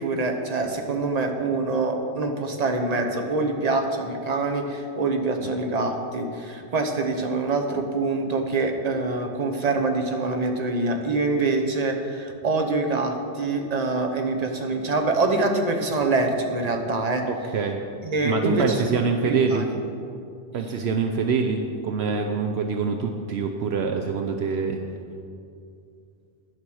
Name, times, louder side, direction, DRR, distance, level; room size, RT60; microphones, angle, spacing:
voice 1, 0.0-17.2 18.0-19.7, right 3 dB, 40° right, 4 dB, 1.0 m, -25 dB
voice 2, 17.2-17.8 18.2-19.6 20.5-24.8, right 5 dB, 70° right, 4 dB, 0.9 m, -25 dB
10.0 x 7.4 x 6.2 m, 2.4 s
omnidirectional pair, 1.2 m